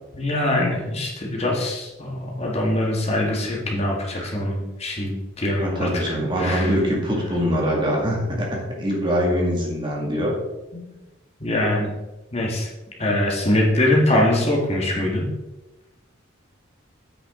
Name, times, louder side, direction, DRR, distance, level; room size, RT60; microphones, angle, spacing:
voice 1, 0.1-5.9 6.4-6.8 10.7-10.9 11.4-11.9 12.3-12.7 13.0-15.3, left 1 dB, 30° left, -1 dB, 1.8 m, -23 dB
voice 2, 5.6-10.3, equal, 25° right, -2 dB, 2.1 m, -23 dB
9.7 x 8.3 x 3.8 m, 1.0 s
head